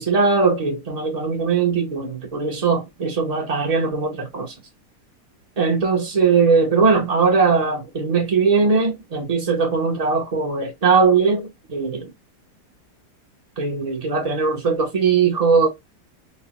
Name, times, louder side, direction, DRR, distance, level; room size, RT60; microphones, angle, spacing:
voice 1, 0.0-4.5 5.6-12.1 13.6-15.7, right 5 dB, 70° right, 0.3 m, -20 dB
4.4 x 2.0 x 2.9 m
omnidirectional pair, 2.0 m